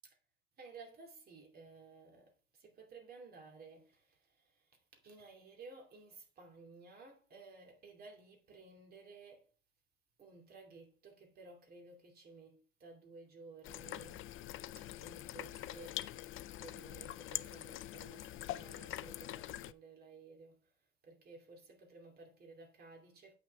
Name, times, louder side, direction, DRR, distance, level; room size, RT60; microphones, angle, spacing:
voice 1, 0.6-9.5 10.2-14.3 14.8-16.0 16.6-20.7 21.0-23.3, right 3 dB, 50° right, 2.5 m, -56 dB
sound 1, 13.6-19.7, left 14 dB, 85° left, 0.5 m, -44 dB
8.5 x 6.0 x 4.6 m
cardioid pair, 180°, 20 cm